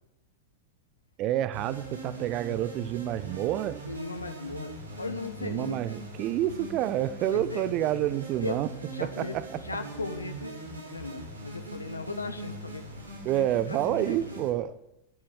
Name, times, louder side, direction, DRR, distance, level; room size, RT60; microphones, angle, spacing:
voice 1, 1.2-3.8 5.4-8.7 9.0-9.4 13.2-14.8, right 12 dB, 40° right, 16 dB, 0.9 m, -28 dB
sound 1, 1.5-14.5, right 2 dB, 80° right, 4.2 m, -41 dB
voice 2, 3.9-5.9 7.3-7.6 8.4-8.6 8.9-12.9 13.4-14.4, left 3 dB, 80° left, 8 dB, 1.2 m, -38 dB
14.5 x 12.0 x 7.3 m, 0.90 s
figure-of-eight pair, 90°, 0 cm